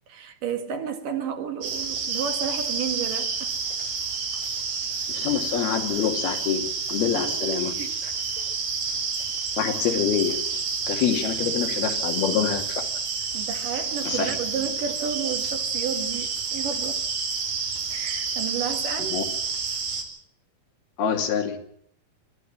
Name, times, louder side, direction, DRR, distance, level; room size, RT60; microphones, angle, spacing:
voice 1, 0.1-3.5 7.1-8.0 8.4-8.5 11.8-12.0 13.3-17.0 17.9-19.2, right 7 dB, 65° right, 3.3 m, -32 dB
sound 1, 1.6-20.0, right 5 dB, 80° right, 5.3 m, -29 dB
voice 2, 5.1-7.7 8.0-8.1 9.6-10.4 10.9-12.8 14.0-14.4 19.1-19.2 21.0-21.6, left 8 dB, 80° left, 4.3 m, -26 dB
28.5 x 13.5 x 7.5 m
omnidirectional pair, 4.4 m